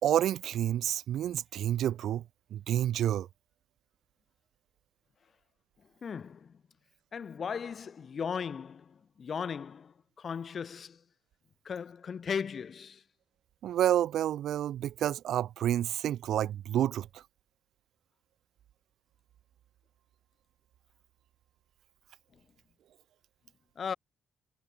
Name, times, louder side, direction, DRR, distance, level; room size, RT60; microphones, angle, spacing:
voice 1, 0.0-2.2 2.5-3.3 13.6-17.1, right 11 dB, 75° right, 2.4 m, -29 dB
voice 2, 6.0-6.5 7.1-11.0 11.6-13.0 23.8-24.0, left 6 dB, 45° left, 4.1 m, -37 dB
cardioid pair, 90°, 0 cm